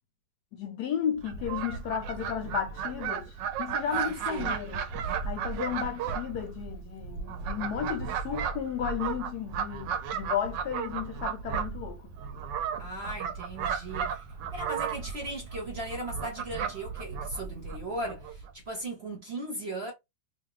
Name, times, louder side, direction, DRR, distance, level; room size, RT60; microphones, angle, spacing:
voice 1, 0.5-4.8 5.2-12.1, left 9 dB, 70° left, 1.0 m, -34 dB
Fowl, 1.2-18.5, right 7 dB, 80° right, 1.2 m, -34 dB
voice 2, 3.8-4.4 5.7-5.9 12.8-14.2 14.5-19.9, right 1 dB, 50° right, 0.8 m, -38 dB
2.7 x 2.5 x 3.0 m
omnidirectional pair, 2.0 m